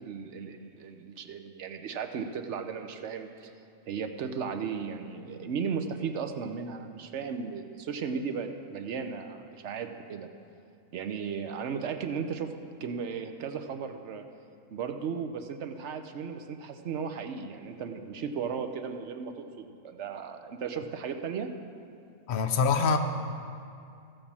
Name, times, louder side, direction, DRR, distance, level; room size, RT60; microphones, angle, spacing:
voice 1, 0.0-3.5 3.9-10.3 10.9-12.5 12.8-14.2 14.7-21.5, right 6 dB, 60° right, 7 dB, 0.9 m, -35 dB
voice 2, 22.3-23.0, left 5 dB, 60° left, 5 dB, 0.5 m, -24 dB
14.5 x 5.4 x 7.2 m, 2.4 s
omnidirectional pair, 1.5 m